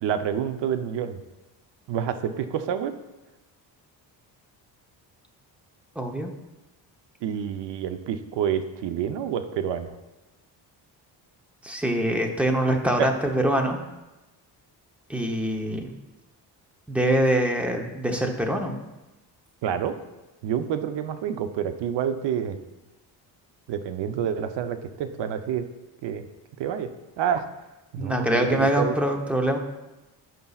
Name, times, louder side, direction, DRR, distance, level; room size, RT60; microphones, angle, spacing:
voice 1, 0.0-1.2 1.9-2.9 7.2-9.9 13.0-13.1 19.6-19.9 20.4-22.6 23.7-25.7 26.0-26.2 26.6-26.9 27.2-27.5 27.9-29.0, right 8 dB, 80° right, 9 dB, 0.8 m, -28 dB
voice 2, 6.0-6.3 11.6-13.8 15.1-15.9 16.9-18.8 28.0-29.6, right 1 dB, 5° right, 2 dB, 0.8 m, -24 dB
16.0 x 5.4 x 2.4 m, 1.0 s
cardioid pair, 145°, 42 cm